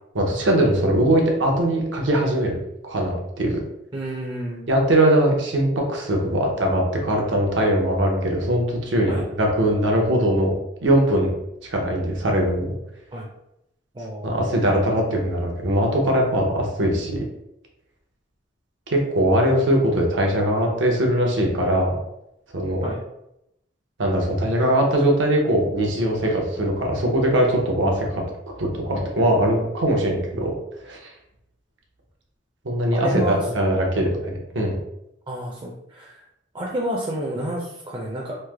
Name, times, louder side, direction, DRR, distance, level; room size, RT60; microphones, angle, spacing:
voice 1, 0.1-2.6 2.8-3.6 4.7-10.6 10.8-11.3 11.6-12.7 14.2-17.2 18.9-22.0 22.5-22.8 24.0-30.5 30.8-31.1 32.6-34.8, right 1 dB, 85° right, 0 dB, 0.7 m, -21 dB
voice 2, 3.9-4.6 9.1-9.2 13.1-13.3 13.9-14.6 22.8-23.0 32.9-33.5 35.3-36.2 36.5-38.4, right 1 dB, 25° right, -2 dB, 0.4 m, -30 dB
3.1 x 2.0 x 3.3 m, 0.82 s
head